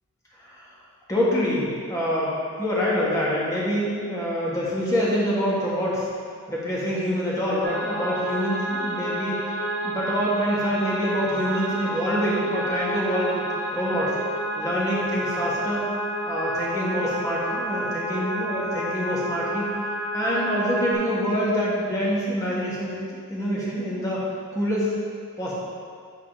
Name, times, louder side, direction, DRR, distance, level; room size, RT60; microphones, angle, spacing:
voice 1, 0.4-0.7 1.1-6.1 6.5-9.4 9.8-13.4 13.7-14.1 14.5-15.8 16.3-19.6 20.1-23.0 23.3-24.2 24.5-24.9 25.4-25.5, equal, 15° left, -7 dB, 1.5 m, -26 dB
sound 1, 7.6-20.9, right 1 dB, 15° right, 1.9 m, -30 dB
8.9 x 4.0 x 5.1 m, 2.2 s
head